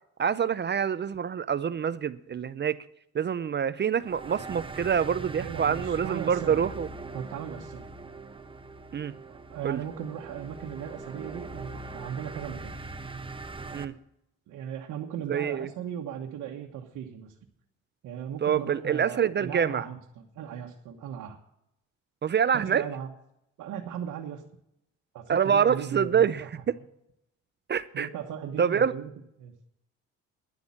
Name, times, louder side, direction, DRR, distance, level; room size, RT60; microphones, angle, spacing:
voice 1, 0.2-2.8 3.1-6.9 8.9-9.1 9.6-9.8 13.7-13.9 15.3-15.7 18.4-19.8 22.2-22.8 25.3-26.8 27.7-28.1 28.6-28.9, right 7 dB, 35° right, 0.5 m, -26 dB
sound 1, 4.0-13.8, right 3 dB, 15° right, 1.0 m, -41 dB
voice 2, 5.3-6.6 7.1-7.8 9.3-12.7 14.5-17.4 18.0-21.4 22.5-23.1 23.6-24.4 25.1-26.5 27.9-29.1 29.4-29.5, right 9 dB, 85° right, 1.3 m, -37 dB
11.0 x 8.4 x 8.5 m
cardioid pair, 90°, 30 cm